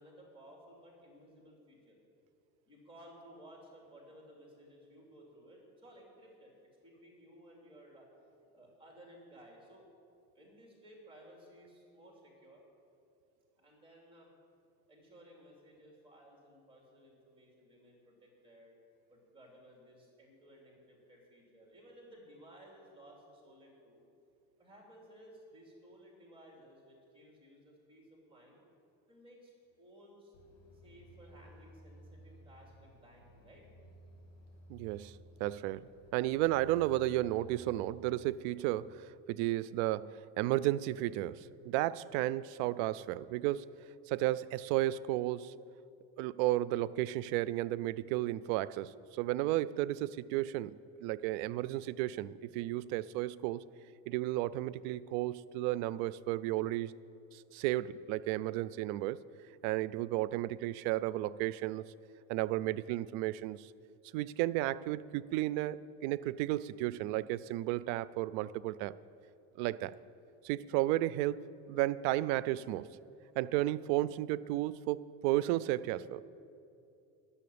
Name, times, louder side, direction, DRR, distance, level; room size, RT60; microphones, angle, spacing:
voice 1, 0.0-2.0 2.6-8.1 8.5-9.9 10.3-12.6 13.6-14.3 14.9-18.7 19.1-24.0 24.6-28.6 29.1-30.3 30.7-33.7, equal, 15° right, -1 dB, 2.9 m, -57 dB
sound 1, 30.3-38.3, equal, 50° left, 2.7 m, -57 dB
voice 2, 34.7-43.7 44.1-45.5 46.2-50.7 51.0-53.6 54.1-56.9 57.3-59.2 59.6-61.8 62.3-63.7 64.1-69.0 69.6-70.0 70.4-72.9 73.4-76.2, right 15 dB, 80° right, 19 dB, 0.5 m, -33 dB
11.5 x 7.0 x 8.6 m, 2.7 s
cardioid pair, 130°, 35 cm